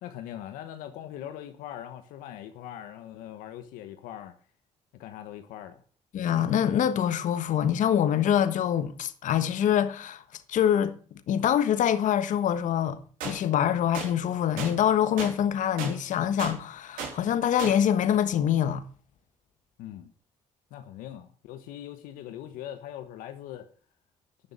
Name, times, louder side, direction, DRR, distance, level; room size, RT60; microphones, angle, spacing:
voice 1, 0.0-4.3 4.9-5.8 19.8-20.1 20.7-23.7, left 11 dB, 85° left, 1.2 m, -41 dB
voice 2, 6.1-10.2 10.5-10.9 11.3-13.0 13.2-18.8, left 9 dB, 65° left, 1.3 m, -25 dB
sound 1, 13.2-13.4 13.9-14.1 14.6-14.7 15.2-15.3 15.8-15.9 16.4-16.5 17.0-17.1 17.6-17.7, right 6 dB, 85° right, 4.1 m, -34 dB
12.5 x 7.1 x 8.4 m
supercardioid pair, 65°, 14 cm